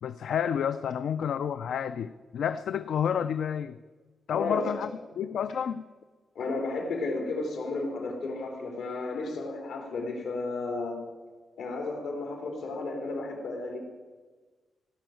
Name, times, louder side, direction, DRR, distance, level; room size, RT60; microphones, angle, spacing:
voice 1, 0.0-3.8 4.3-4.9 5.2-5.9, left 8 dB, 70° left, 0.4 m, -30 dB
voice 2, 4.3-4.8 6.3-11.0 11.6-13.8, left 3 dB, 85° left, 3.3 m, -33 dB
17.0 x 6.2 x 9.1 m
wide cardioid pair, 180°, 0 cm